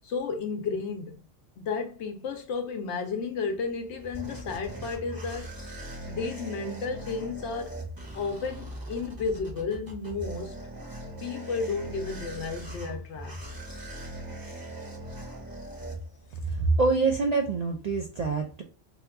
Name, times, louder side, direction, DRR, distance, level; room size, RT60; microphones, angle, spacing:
voice 1, 0.0-1.2 1.6-5.5 6.1-7.8 8.1-10.5 11.2-13.4, left 4 dB, 80° left, 0.9 m, -32 dB
sound 1, 3.5-16.5, right 1 dB, 20° right, 0.7 m, -40 dB
voice 2, 16.5-18.6, right 3 dB, 60° right, 0.4 m, -25 dB
2.9 x 2.2 x 3.4 m
omnidirectional pair, 1.2 m